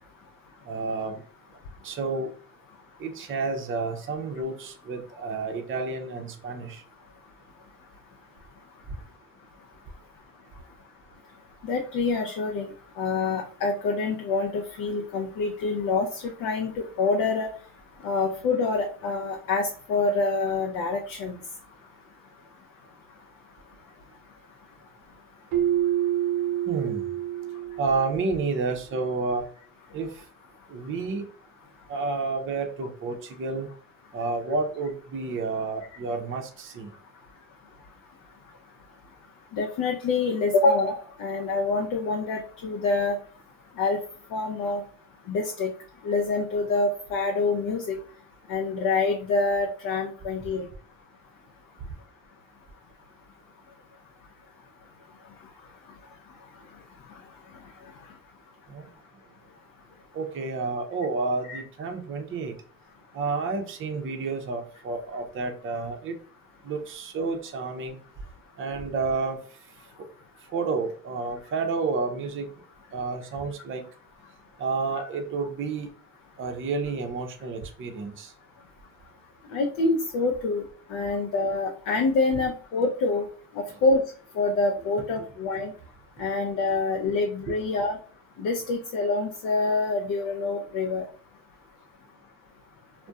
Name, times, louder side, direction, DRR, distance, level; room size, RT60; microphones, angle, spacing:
voice 1, 0.7-1.2 1.8-2.3 3.0-6.8 26.7-27.0 27.8-29.5 29.9-30.1 30.7-31.2 31.9-33.7 34.1-36.9 58.7-58.9 60.1-62.5 63.1-66.2 66.6-68.0 68.6-69.4 70.5-72.5 72.9-73.8 74.6-75.9 76.4-78.3 83.7-83.8 85.2-85.3 87.5-87.6, right 4 dB, 35° right, 4 dB, 0.5 m, -30 dB
voice 2, 11.7-12.7 13.0-17.5 18.0-21.4 39.5-43.2 43.8-44.0 44.3-44.8 45.3-45.7 46.0-48.0 48.5-50.7 61.5-61.6 79.5-80.6 80.9-83.3 83.8-84.0 84.4-85.7 86.2-88.0 88.4-91.0, left 3 dB, 55° left, 3 dB, 0.6 m, -26 dB
Keyboard (musical), 25.5-28.3, right 11 dB, 85° right, 0.6 m, -27 dB
2.5 x 2.1 x 2.3 m, 0.42 s
supercardioid pair, 75°, 38 cm